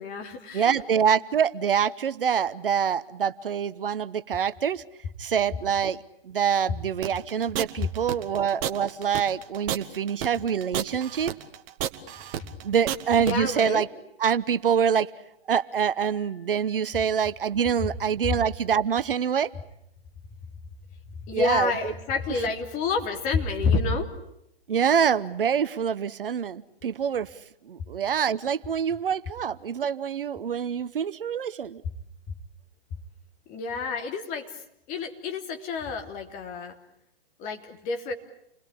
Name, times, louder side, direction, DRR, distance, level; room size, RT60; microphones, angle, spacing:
voice 1, 0.0-0.8 13.2-13.8 21.3-24.1 33.5-34.5 34.9-36.7 37.4-38.1, left 4 dB, 25° left, 4 dB, 3.4 m, -28 dB
voice 2, 0.5-4.8 5.2-6.0 6.2-11.3 12.6-13.9 14.2-15.1 15.5-19.5 21.3-21.9 24.7-27.3 27.7-31.8, right 7 dB, 65° right, 14 dB, 1.1 m, -25 dB
sound 1, 7.0-13.3, right 11 dB, 35° right, 1.7 m, -31 dB
29.5 x 21.5 x 8.5 m, 0.78 s
figure-of-eight pair, 125°, 30 cm